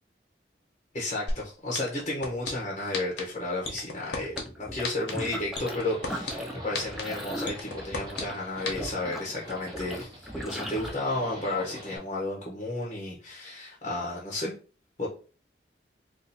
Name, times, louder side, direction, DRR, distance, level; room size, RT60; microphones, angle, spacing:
voice 1, 0.9-14.5 15.0-15.1, left 2 dB, 35° left, -3 dB, 0.8 m, -32 dB
sound 1, 1.3-1.4 1.7-2.5 2.9-3.2 3.6-4.4 4.8-5.1 5.6-6.3 6.7-7.0 7.5-8.2 8.7-8.8, left 3 dB, 80° left, 1.0 m, -31 dB
sound 2, 4.2-5.8 6.1-10.9, equal, ahead, 0.4 m, -38 dB
Livestock farm animals working animals, 5.6-12.0, equal, 25° right, 0.9 m, -44 dB
2.7 x 2.6 x 4.0 m, 0.38 s
head